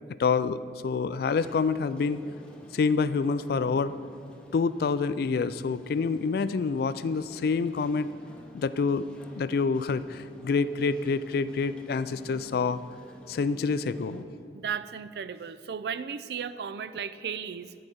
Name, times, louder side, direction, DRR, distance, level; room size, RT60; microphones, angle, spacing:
voice 1, 0.2-2.2 2.7-3.9 4.5-8.1 8.5-9.1 9.4-12.8 13.3-14.2, left 4 dB, 55° left, 15 dB, 0.3 m, -27 dB
sound 1, 1.3-14.2, equal, 5° left, 0.7 m, -50 dB
voice 2, 14.5-17.7, right 7 dB, 65° right, 14 dB, 0.4 m, -35 dB
11.0 x 4.9 x 7.7 m, 2.4 s
head